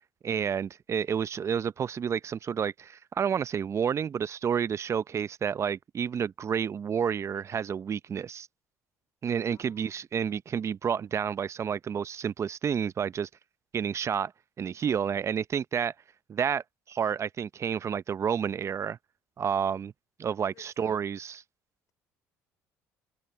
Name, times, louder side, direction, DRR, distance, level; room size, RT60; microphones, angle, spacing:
voice 1, 0.2-8.5 9.2-13.3 13.7-14.3 14.6-15.9 16.3-19.0 19.4-19.9 20.2-21.4, right 7 dB, 40° right, 0.7 m, -30 dB
voice 2, 9.5-10.1 20.5-21.0, left 10 dB, 55° left, 3.8 m, -57 dB
open air
hypercardioid pair, 65°, 7 cm